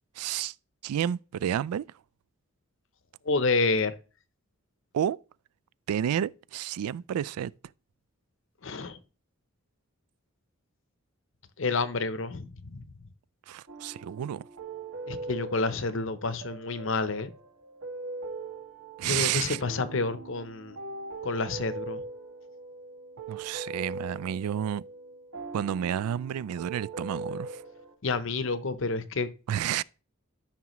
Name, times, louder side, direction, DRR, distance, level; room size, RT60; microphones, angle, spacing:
voice 1, 0.2-0.5 0.8-1.8 4.9-5.2 5.9-7.5 13.5-14.5 19.0-19.6 23.3-24.8 25.5-27.6 29.5-29.8, right 9 dB, 90° right, 0.3 m, -30 dB
voice 2, 3.2-3.9 8.6-9.0 11.6-12.8 15.1-17.3 19.0-20.8 21.2-22.0 28.0-29.3, left 3 dB, 60° left, 0.7 m, -29 dB
sound 1, 13.7-27.9, right 3 dB, 70° right, 1.7 m, -41 dB
13.0 x 5.8 x 3.0 m
head